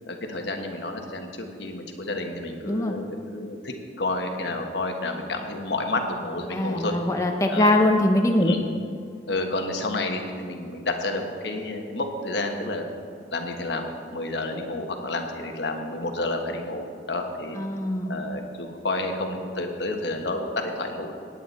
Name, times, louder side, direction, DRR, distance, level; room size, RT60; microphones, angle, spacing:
voice 1, 0.0-6.9 7.5-7.7 8.4-8.6 9.3-12.8 13.3-17.6 18.1-21.1, left 2 dB, 65° left, 4 dB, 1.3 m, -30 dB
voice 2, 6.5-8.5 17.6-18.1, left 1 dB, 15° left, 2 dB, 0.7 m, -22 dB
17.5 x 9.3 x 4.2 m, 2.3 s
head